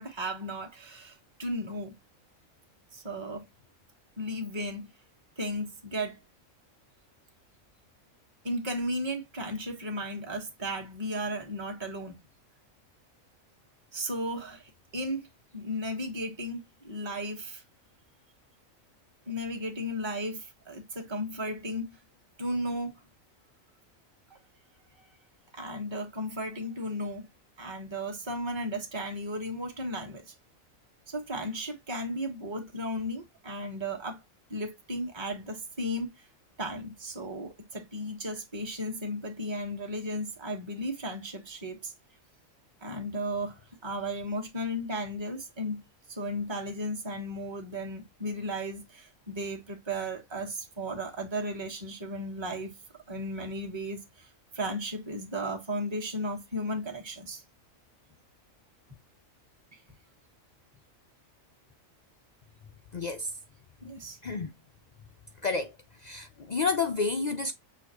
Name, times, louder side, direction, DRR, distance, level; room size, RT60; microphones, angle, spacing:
voice 1, 0.0-2.0 2.9-3.4 4.2-4.9 5.4-6.2 8.4-12.2 13.9-15.3 15.5-17.6 19.3-22.0 22.4-23.0 24.3-24.4 25.5-27.3 27.6-30.3 31.1-34.2 34.5-36.3 36.6-41.9 42.8-45.8 46.1-52.8 53.1-54.3 54.5-57.4 63.8-64.2, equal, 20° right, 1.3 m, -35 dB
voice 2, 62.9-63.3 64.2-64.5 65.4-65.7 66.0-67.5, left 4 dB, 85° left, 0.3 m, -30 dB
6.3 x 2.8 x 2.9 m
omnidirectional pair, 1.4 m